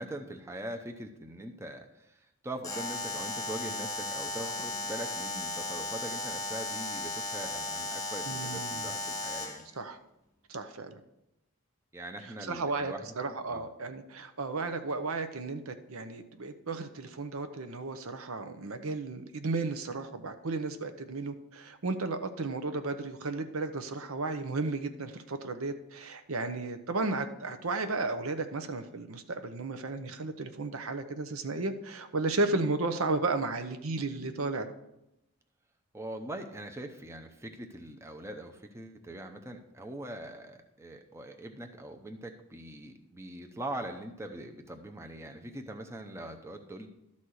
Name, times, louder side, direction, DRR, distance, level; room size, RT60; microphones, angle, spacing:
voice 1, 0.0-9.6 11.9-13.6 35.9-46.9, right 1 dB, 10° right, 4 dB, 0.6 m, -42 dB
Alarm, 2.6-9.7, left 2 dB, 15° left, 0.9 m, -36 dB
voice 2, 8.3-8.9 9.8-10.0 10.5-11.0 12.5-34.7, right 3 dB, 75° right, 8 dB, 0.8 m, -34 dB
12.0 x 4.2 x 6.3 m, 0.87 s
head